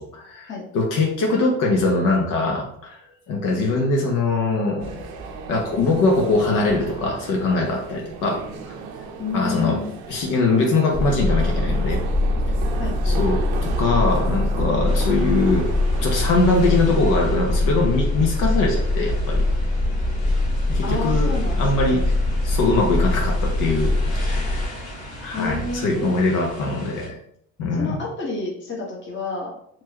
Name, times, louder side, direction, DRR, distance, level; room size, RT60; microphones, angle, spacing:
voice 1, 0.0-3.0 3.3-5.0 5.5-8.5 9.3-9.8 10.1-12.0 13.0-15.7 16.0-19.4 20.7-22.1 22.4-23.9 24.2-24.8 25.2-27.2 27.6-28.0, left 3 dB, 70° left, 1 dB, 0.9 m, -22 dB
sound 1, 4.8-16.9, right 5 dB, 90° right, 0.7 m, -35 dB
voice 2, 9.2-10.0 12.8-13.2 20.8-22.0 25.3-26.1 27.8-29.5, left 3 dB, 35° left, -3 dB, 1.3 m, -30 dB
sound 2, 10.9-24.6, left 1 dB, 10° left, 1.1 m, -22 dB
sound 3, 14.8-27.1, left 1 dB, 90° left, 1.5 m, -38 dB
4.4 x 3.1 x 2.9 m, 0.70 s
supercardioid pair, 75°, 33 cm